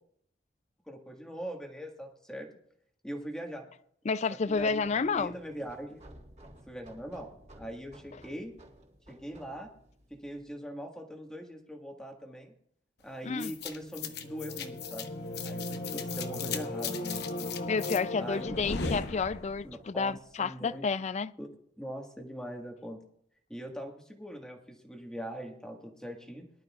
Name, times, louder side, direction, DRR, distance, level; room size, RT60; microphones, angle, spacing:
voice 1, 0.9-2.5 3.0-3.6 4.5-6.0 6.7-7.3 7.5-8.5 9.1-9.7 10.1-12.5 13.0-15.1 15.4-17.5 18.2-18.5 19.6-20.9 21.4-21.5 21.8-23.0 23.5-26.4, equal, 5° left, 1.6 m, -41 dB
voice 2, 4.0-5.3 13.2-13.5 17.7-21.3, left 5 dB, 40° left, 0.4 m, -30 dB
sound 1, 4.5-10.5, right 1 dB, 40° right, 3.7 m, -55 dB
sound 2, 13.4-19.8, left 3 dB, 65° left, 0.9 m, -36 dB
23.0 x 12.0 x 2.4 m
head